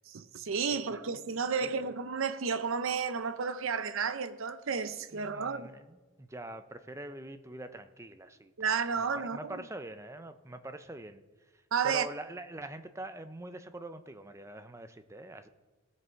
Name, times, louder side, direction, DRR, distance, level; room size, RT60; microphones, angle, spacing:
voice 1, 0.1-5.7 8.6-9.6 11.7-12.1, right 6 dB, 65° right, 0.6 m, -32 dB
voice 2, 5.1-8.7 9.3-11.2 11.8-15.5, right 1 dB, 15° right, 0.5 m, -44 dB
17.0 x 6.4 x 4.5 m
head